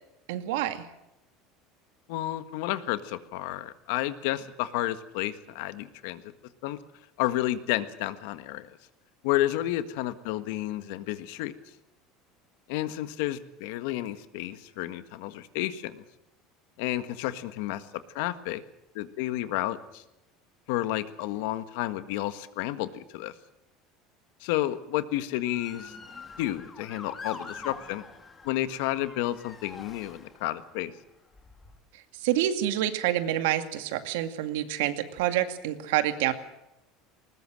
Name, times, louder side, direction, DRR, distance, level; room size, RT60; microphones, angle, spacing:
voice 1, 0.3-0.9 32.1-36.3, right 12 dB, 85° right, 9 dB, 2.3 m, -27 dB
voice 2, 2.1-6.3 6.6-6.8 7.2-8.8 9.2-11.5 12.7-16.0 16.8-17.9 18.1-18.6 18.9-20.0 20.7-23.3 24.4-25.9 26.4-28.0 28.4-30.9, left 15 dB, 75° left, 12 dB, 1.6 m, -31 dB
Motor vehicle (road) / Siren, 25.5-30.7 31.3-31.8, left 4 dB, 15° left, 2.2 m, -45 dB
20.5 x 20.0 x 7.7 m, 0.90 s
cardioid pair, 160°, 0 cm